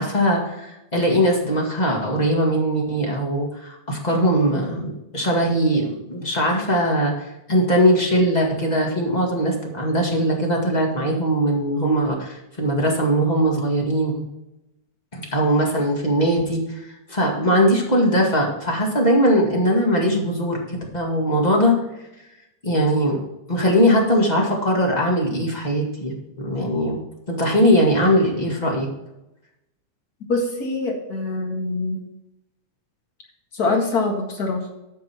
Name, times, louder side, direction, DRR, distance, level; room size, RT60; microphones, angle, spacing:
voice 1, 0.0-14.2 15.1-20.6 20.9-21.7 22.6-23.2 23.5-27.0 27.3-28.9, equal, 20° left, -1 dB, 1.4 m, -20 dB
voice 2, 30.3-32.0 33.5-34.6, left 3 dB, 35° left, 1 dB, 1.9 m, -24 dB
11.0 x 6.6 x 4.4 m, 0.92 s
omnidirectional pair, 3.6 m